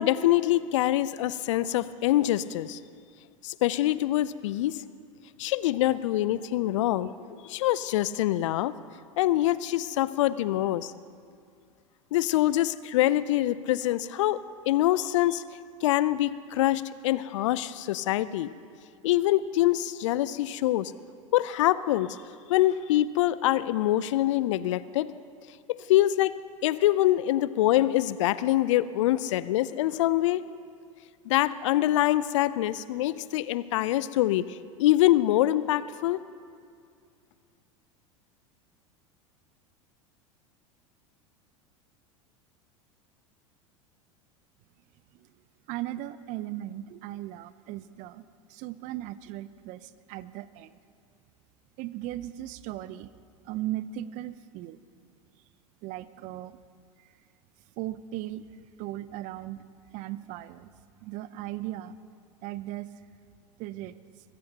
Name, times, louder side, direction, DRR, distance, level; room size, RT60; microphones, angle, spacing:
voice 1, 0.0-2.8 3.4-4.8 5.4-7.1 7.4-8.7 9.2-10.9 12.1-14.4 14.7-15.4 15.8-18.5 19.0-20.9 21.3-22.2 22.5-25.1 25.7-26.3 26.6-30.4 31.3-36.2, left 14 dB, 65° left, 17 dB, 0.5 m, -25 dB
voice 2, 45.7-50.8 51.8-53.1 53.4-54.8 55.8-56.6 57.0-57.1 57.8-60.7 61.0-62.0 62.4-62.9 63.6-64.0, right 14 dB, 50° right, 16 dB, 0.6 m, -37 dB
22.0 x 15.0 x 2.9 m, 2.2 s
hypercardioid pair, 80°, 17 cm